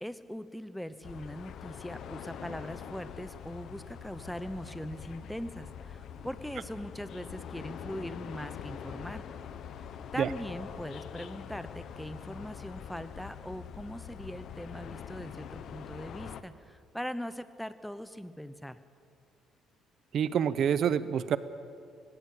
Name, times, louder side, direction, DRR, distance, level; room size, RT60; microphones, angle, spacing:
voice 1, 0.0-9.3 9.8-9.9 10.1-18.8, equal, ahead, 13 dB, 0.9 m, -41 dB
sound 1, 1.0-16.4, left 8 dB, 60° left, 1.0 m, -44 dB
voice 2, 20.1-21.4, right 8 dB, 55° right, 15 dB, 0.8 m, -27 dB
19.0 x 17.5 x 8.5 m, 2.3 s
cardioid pair, 120°, 0 cm